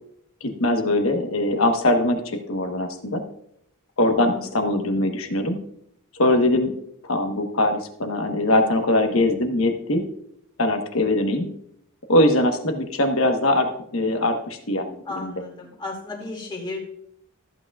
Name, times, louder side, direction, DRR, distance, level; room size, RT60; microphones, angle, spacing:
voice 1, 0.4-3.2 4.0-5.6 6.1-6.7 7.0-10.0 10.6-11.5 12.1-15.3, left 1 dB, 65° left, 5 dB, 1.2 m, -22 dB
voice 2, 4.2-4.5 15.1-16.9, left 3 dB, 20° left, 0 dB, 2.3 m, -34 dB
14.0 x 8.4 x 2.4 m, 0.73 s
head